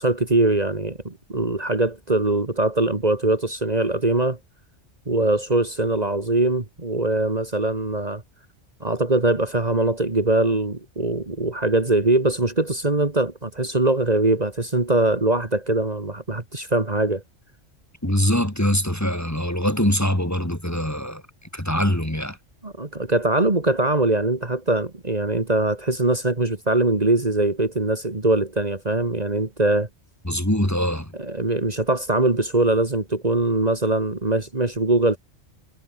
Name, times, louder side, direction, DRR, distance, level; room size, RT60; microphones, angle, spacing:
voice 1, 0.0-4.4 5.1-8.2 8.8-17.2 22.6-29.9 31.2-35.2, right 2 dB, 35° right, 2.2 m, -22 dB
voice 2, 18.0-21.2 21.5-22.4 30.3-31.1, left 1 dB, 15° left, 2.7 m, -23 dB
omnidirectional pair, 1.2 m